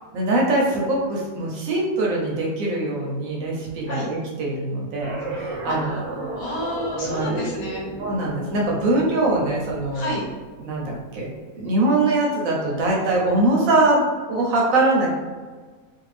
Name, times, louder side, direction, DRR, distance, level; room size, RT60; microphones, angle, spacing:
voice 1, 0.1-6.0 7.0-7.4 8.0-10.2 10.6-15.1, right 2 dB, 75° right, -2 dB, 1.0 m, -22 dB
sound 1, 5.0-10.3, right 2 dB, 5° right, 1.0 m, -33 dB
voice 2, 6.4-7.8 9.9-10.2, left 1 dB, 80° left, -4 dB, 1.3 m, -29 dB
2.6 x 2.4 x 3.1 m, 1.4 s
omnidirectional pair, 1.5 m